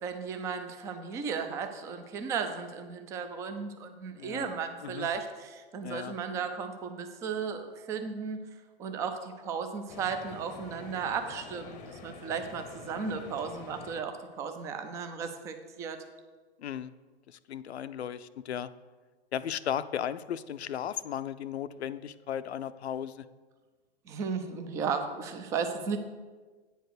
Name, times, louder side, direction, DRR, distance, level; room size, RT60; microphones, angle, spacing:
voice 1, 0.0-8.4 8.8-16.0 24.1-26.0, right 6 dB, 10° right, 7 dB, 0.3 m, -35 dB
voice 2, 4.1-4.5 4.8-5.1 5.8-6.2 16.6-16.9 17.3-18.7 19.3-23.2, left 9 dB, 85° left, 14 dB, 0.5 m, -36 dB
sound 1, 9.9-14.0, left 4 dB, 25° left, 0.7 m, -47 dB
9.0 x 4.5 x 6.7 m, 1.4 s
hypercardioid pair, 125°, 32 cm